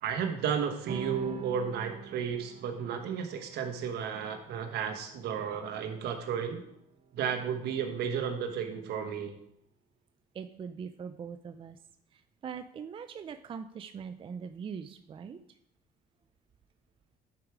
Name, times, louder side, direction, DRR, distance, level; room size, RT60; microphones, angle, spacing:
voice 1, 0.0-6.6 7.1-9.3, right 7 dB, 75° right, 5 dB, 1.2 m, -33 dB
sound 1, 0.9-7.6, right 5 dB, 55° right, 1.1 m, -46 dB
voice 2, 10.3-11.8 12.1-15.4, right 6 dB, 30° right, 9 dB, 0.4 m, -42 dB
10.0 x 4.7 x 4.9 m, 0.75 s
cardioid pair, 110°, 17 cm